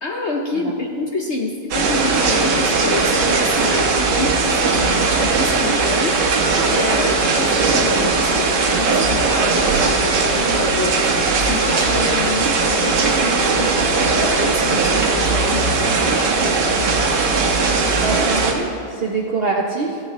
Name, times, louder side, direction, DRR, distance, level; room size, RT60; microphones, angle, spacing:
voice 1, 0.0-16.9, left 3 dB, 55° left, 1 dB, 0.8 m, -28 dB
sound 1, 1.7-18.5, right 4 dB, 75° right, 1.7 m, -18 dB
voice 2, 17.6-18.7 18.9-20.0, right 4 dB, 55° right, -1 dB, 0.7 m, -24 dB
14.5 x 10.0 x 3.1 m, 2.6 s
omnidirectional pair, 1.9 m